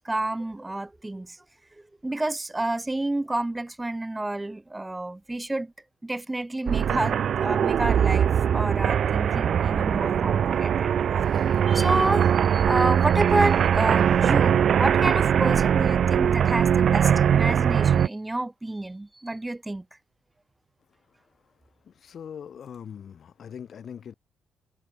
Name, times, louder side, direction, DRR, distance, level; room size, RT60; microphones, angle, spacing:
voice 1, 0.0-1.4 2.0-5.7 6.0-10.9 11.7-19.8, right 2 dB, 15° right, 1.2 m, -29 dB
sound 1, 6.7-18.1, right 8 dB, 60° right, 1.3 m, -21 dB
voice 2, 22.0-24.1, left 8 dB, 55° left, 4.0 m, -41 dB
cardioid pair, 90°, 0 cm